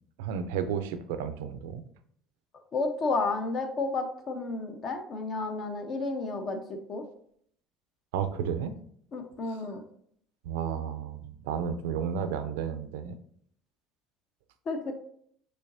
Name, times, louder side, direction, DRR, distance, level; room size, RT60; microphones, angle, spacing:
voice 1, 0.2-1.8 8.1-8.7 9.5-9.6 10.4-13.2, right 7 dB, 80° right, 10 dB, 0.4 m, -32 dB
voice 2, 2.7-7.0 9.1-9.8 14.7-14.9, left 3 dB, 50° left, 5 dB, 0.8 m, -31 dB
5.5 x 3.1 x 2.6 m, 0.64 s
hypercardioid pair, 70°, 0 cm